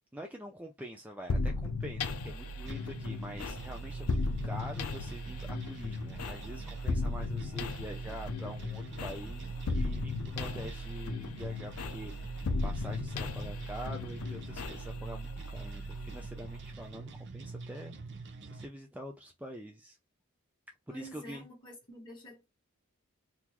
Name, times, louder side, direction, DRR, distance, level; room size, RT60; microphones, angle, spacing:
voice 1, 0.1-4.2 4.4-17.9 18.5-20.0 20.9-21.4, equal, 5° right, 0.4 m, -45 dB
sound 1, 1.3-16.9, left 2 dB, 80° left, 0.5 m, -36 dB
sound 2, 2.6-18.6, right 3 dB, 55° right, 0.6 m, -45 dB
voice 2, 20.9-22.4, equal, 25° left, 1.8 m, -49 dB
3.6 x 2.5 x 2.9 m
head